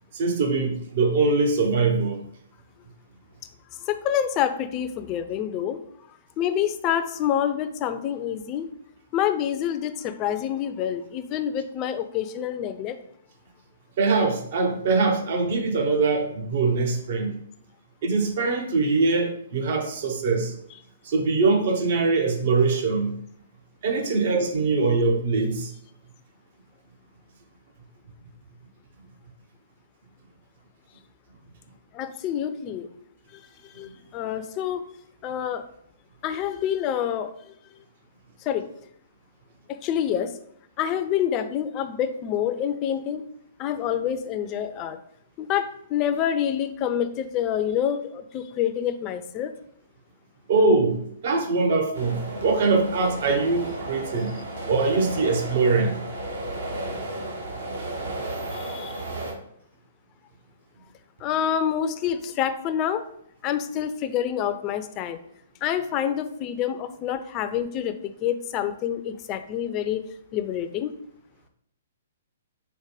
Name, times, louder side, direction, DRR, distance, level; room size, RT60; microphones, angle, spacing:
voice 1, 0.1-2.2 14.0-17.3 18.0-20.5 21.0-23.2 23.8-25.7 50.5-54.3 54.7-56.0, right 3 dB, 55° right, 4 dB, 0.8 m, -22 dB
voice 2, 3.7-5.8 6.4-8.7 9.1-13.0 31.9-32.9 33.3-34.8 35.2-35.7 36.2-37.5 38.4-38.7 39.7-40.4 40.8-43.2 43.6-45.0 45.4-49.5 58.5-59.0 61.2-63.0 63.4-65.2 65.6-70.0 70.3-70.9, left 9 dB, 30° left, 9 dB, 0.4 m, -27 dB
sound 1, 51.9-59.3, right 1 dB, 70° right, 1.1 m, -33 dB
4.8 x 2.1 x 4.8 m, 0.69 s
figure-of-eight pair, 125°, 0 cm